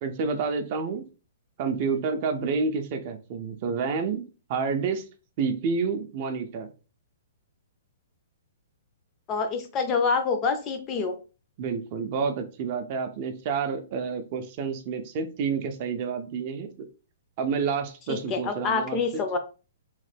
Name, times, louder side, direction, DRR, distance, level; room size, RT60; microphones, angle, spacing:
voice 1, 0.0-1.0 1.6-4.2 4.5-5.0 5.4-6.7 11.6-16.9 17.4-19.4, right 5 dB, 40° right, 6 dB, 0.4 m, -29 dB
voice 2, 9.3-11.1 18.1-19.4, left 5 dB, 25° left, 7 dB, 0.4 m, -26 dB
3.0 x 2.1 x 3.3 m, 0.34 s
hypercardioid pair, 150°, 0 cm